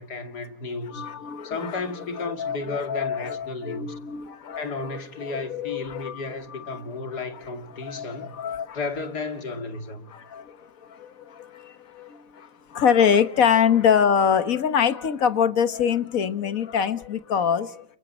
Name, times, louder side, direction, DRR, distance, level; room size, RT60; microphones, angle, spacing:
voice 1, 0.0-1.1 1.4-3.9 4.5-8.3 8.7-10.1, left 3 dB, 80° left, 3.0 m, -33 dB
voice 2, 0.9-6.2 6.5-7.6 7.8-8.8 10.1-17.8, left 7 dB, 60° left, 1.7 m, -25 dB
30.0 x 29.5 x 4.4 m
omnidirectional pair, 1.7 m